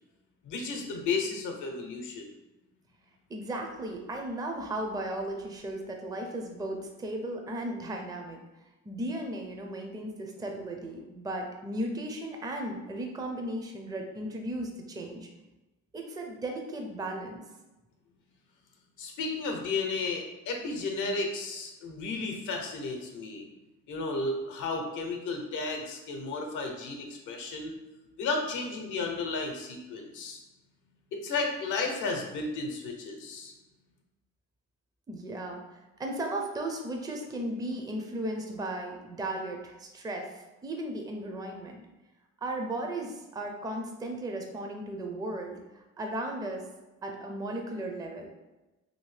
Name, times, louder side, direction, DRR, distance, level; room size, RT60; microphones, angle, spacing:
voice 1, 0.4-2.3 19.0-23.5 23.9-27.7 28.2-30.4 31.1-33.5, left 3 dB, 80° left, 2 dB, 0.7 m, -33 dB
voice 2, 3.3-8.4 8.8-15.3 15.9-17.4 35.1-41.8 42.4-46.6 47.0-48.3, right 1 dB, 15° right, 2 dB, 0.4 m, -36 dB
2.8 x 2.7 x 3.2 m, 1.1 s
cardioid pair, 90°, 30 cm